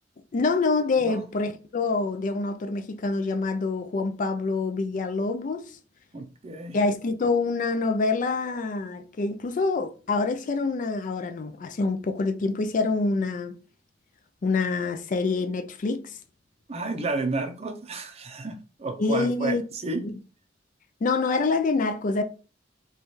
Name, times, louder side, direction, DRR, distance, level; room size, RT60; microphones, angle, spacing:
voice 1, 0.3-5.7 6.7-13.5 14.4-16.2 19.0-19.6 20.0-20.1 21.0-22.2, left 3 dB, 45° left, 0.4 m, -26 dB
voice 2, 6.1-6.8 16.7-20.0, right 2 dB, 35° right, 0.5 m, -31 dB
3.1 x 2.3 x 4.1 m
head